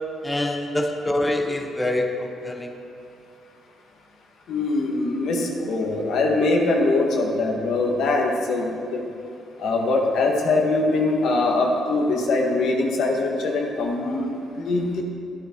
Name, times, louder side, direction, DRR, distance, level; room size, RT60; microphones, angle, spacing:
voice 1, 0.2-2.7, left 1 dB, 15° left, 3 dB, 1.0 m, -25 dB
voice 2, 4.5-9.0 9.6-15.0, left 2 dB, 75° left, 0 dB, 1.7 m, -22 dB
11.5 x 11.0 x 4.6 m, 2.5 s
cardioid pair, 90°, 0 cm